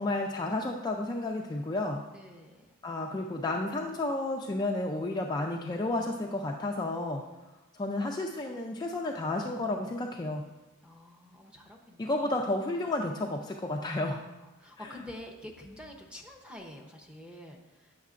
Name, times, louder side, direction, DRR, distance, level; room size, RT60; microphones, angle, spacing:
voice 1, 0.0-2.0 2.8-7.2 7.7-10.4 12.0-14.2 14.8-15.0, left 2 dB, 20° left, 1 dB, 0.3 m, -32 dB
voice 2, 2.1-2.7 10.8-12.1 12.4-12.6 14.6-17.9, left 1 dB, 5° right, 1 dB, 0.7 m, -47 dB
9.2 x 6.4 x 2.5 m, 1.1 s
head